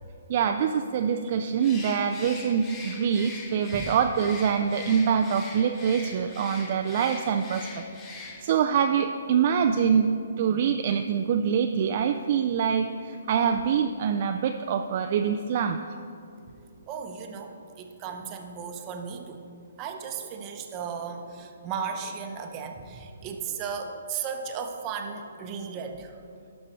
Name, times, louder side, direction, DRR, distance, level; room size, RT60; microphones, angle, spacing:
voice 1, 0.3-7.7 8.2-10.1 10.4-15.8, right 7 dB, 45° right, 6 dB, 0.4 m, -25 dB
Bird, 1.6-8.7, left 3 dB, 20° left, 1.0 m, -42 dB
voice 2, 16.9-19.4 19.8-26.2, right 6 dB, 25° right, 4 dB, 0.8 m, -36 dB
11.5 x 5.4 x 4.4 m, 2.4 s
hypercardioid pair, 145°, 0 cm